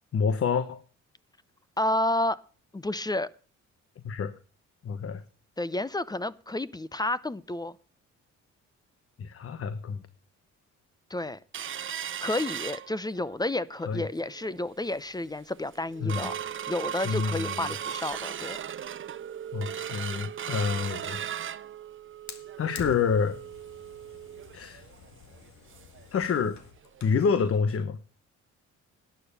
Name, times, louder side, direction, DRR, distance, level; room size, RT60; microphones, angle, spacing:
voice 1, 0.1-0.8 4.0-4.3 4.8-5.2 9.2-10.0 13.9-14.0 16.0-16.3 17.0-17.7 19.5-21.2 22.6-23.4 24.5-24.9 26.1-26.6 27.0-28.0, left 6 dB, 50° left, 1.1 m, -28 dB
voice 2, 1.8-2.4 2.7-3.3 5.6-7.7 11.1-11.4 12.0-18.6, left 1 dB, 15° left, 0.7 m, -31 dB
sound 1, 11.5-13.4 13.8-13.9 14.2-14.6 15.1-15.2 15.5-26.0 26.4-26.5 26.8-27.0 27.5-27.6, right 9 dB, 40° right, 0.7 m, -37 dB
Fire, 22.3-27.2, left 6 dB, 65° left, 2.1 m, -47 dB
11.5 x 9.3 x 6.8 m
cardioid pair, 90°, 30 cm